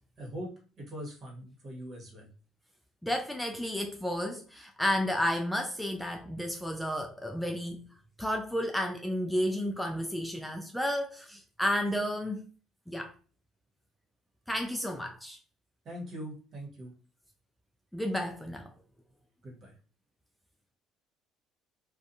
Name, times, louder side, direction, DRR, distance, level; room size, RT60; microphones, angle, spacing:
voice 1, 0.2-2.3 15.8-16.9 19.4-19.7, equal, 45° right, 1.3 m, -42 dB
voice 2, 3.0-7.8 8.2-12.4 12.9-13.1 14.5-15.4 17.9-18.7, equal, ahead, 0.3 m, -32 dB
2.5 x 2.3 x 2.6 m
supercardioid pair, 95°, 0 cm